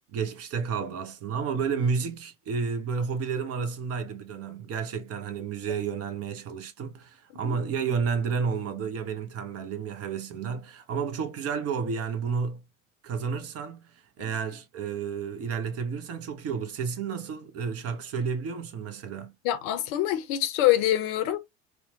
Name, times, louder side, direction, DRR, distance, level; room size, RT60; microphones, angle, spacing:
voice 1, 0.1-12.6 13.0-13.8 14.2-19.3, right 6 dB, 35° right, 0.7 m, -31 dB
voice 2, 19.4-21.4, left 13 dB, 50° left, 0.6 m, -25 dB
2.9 x 2.1 x 2.7 m
figure-of-eight pair, 75°, 41 cm